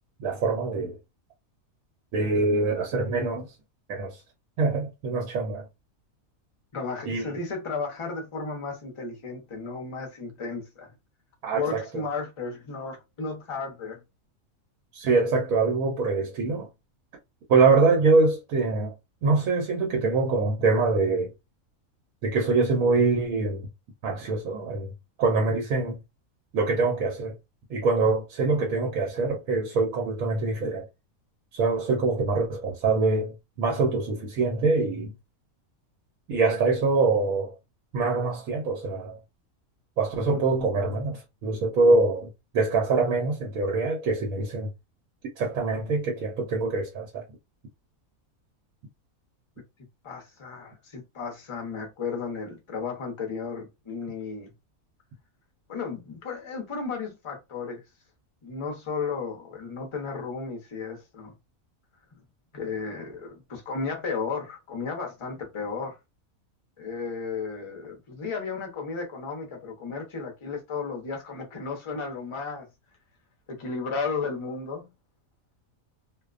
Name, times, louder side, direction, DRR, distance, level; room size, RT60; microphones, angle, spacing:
voice 1, 0.2-1.0 2.1-3.5 3.9-4.2 4.6-5.6 7.1-7.3 11.4-12.0 14.9-16.7 17.5-18.9 19.2-21.3 22.2-23.6 24.0-24.9 25.2-26.0 26.5-27.3 27.7-30.8 31.5-35.1 36.3-37.5 37.9-39.2 40.0-42.3 42.5-44.7 45.4-47.2, right 3 dB, 85° right, 1.1 m, -24 dB
voice 2, 6.7-10.9 11.5-14.0 50.0-54.5 55.7-57.8 58.4-61.3 62.5-66.0 66.8-72.7 73.5-74.9, left 4 dB, 35° left, 0.5 m, -34 dB
2.5 x 2.1 x 2.4 m
omnidirectional pair, 1.4 m